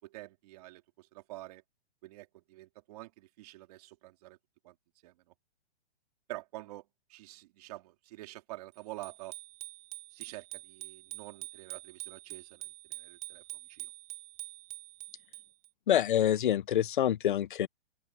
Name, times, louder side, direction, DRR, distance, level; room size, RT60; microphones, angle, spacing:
voice 1, 0.0-1.6 2.0-4.4 4.6-4.8 5.0-5.3 6.3-9.3 10.1-13.9, right 18 dB, 35° right, 3.7 m, -48 dB
Bicycle bell, 9.0-15.7, right 21 dB, 20° right, 4.6 m, -46 dB
voice 2, 15.9-17.7, left 11 dB, 45° left, 0.8 m, -26 dB
open air
hypercardioid pair, 165°, 35 cm